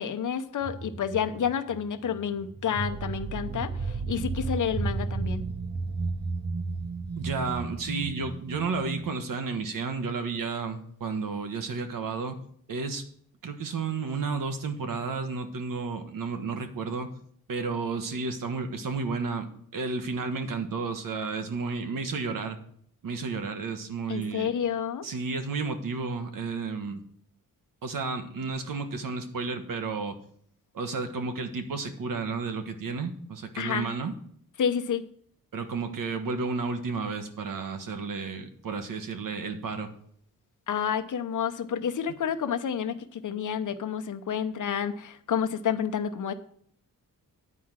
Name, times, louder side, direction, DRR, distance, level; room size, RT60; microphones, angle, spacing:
voice 1, 0.0-5.4 24.1-25.0 33.6-33.9 34.6-35.0 40.7-46.3, left 8 dB, 60° left, 7 dB, 0.8 m, -29 dB
sound 1, 0.6-9.1, right 4 dB, 30° right, 0.6 m, -33 dB
voice 2, 7.2-12.4 12.7-13.0 13.4-17.1 17.5-19.5 19.7-22.6 23.0-24.5 25.0-27.0 27.8-30.1 30.7-34.1 35.5-39.9, right 4 dB, 70° right, 7 dB, 1.3 m, -32 dB
9.9 x 4.8 x 7.4 m, 0.63 s
wide cardioid pair, 120°, 34 cm